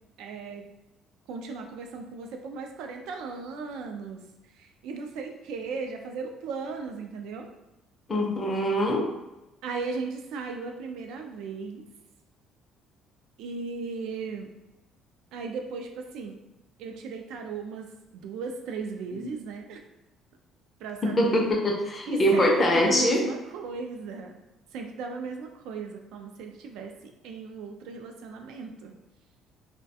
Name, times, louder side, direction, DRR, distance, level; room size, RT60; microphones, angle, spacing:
voice 1, 0.2-0.6 1.3-4.2 4.6-7.5 9.6-11.8 13.4-14.5 15.3-16.4 16.8-17.9 18.1-19.8 20.8-21.5 22.1-24.3 24.7-29.0, right 4 dB, 80° right, 4 dB, 0.3 m, -36 dB
voice 2, 8.1-9.1 19.1-19.3 21.0-23.2, equal, 25° left, 0 dB, 0.5 m, -23 dB
2.3 x 2.1 x 2.7 m, 0.99 s
cardioid pair, 130°, 0 cm